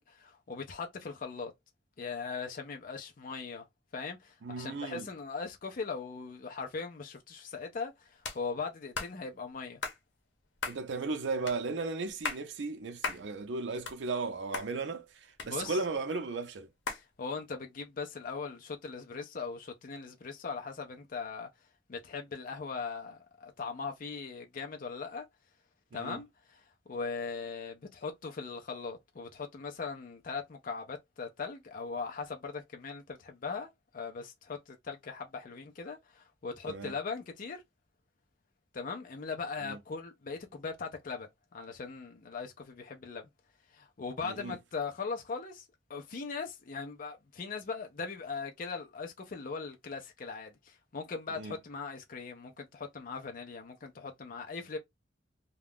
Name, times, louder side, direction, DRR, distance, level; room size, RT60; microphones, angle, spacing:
voice 1, 0.0-1.5 2.0-3.6 3.9-9.8 15.5-15.8 16.9-21.5 21.9-25.3 25.9-26.6 26.9-37.6 38.7-43.3 43.7-45.6 45.9-54.8, left 5 dB, 50° left, 0.5 m, -40 dB
voice 2, 4.4-5.1 10.7-16.7 25.9-26.2 36.7-37.0 39.6-39.8 44.2-44.6 51.3-51.5, right 3 dB, 75° right, 0.5 m, -36 dB
sound 1, 8.2-8.4 8.9-9.1 9.8-10.0 10.6-10.8 11.5-11.6 12.1-12.4 13.0-13.2 13.6-14.3 14.5-14.7 15.4-16.0 16.9-17.0, left 4 dB, 90° left, 0.8 m, -36 dB
2.4 x 2.2 x 3.3 m
head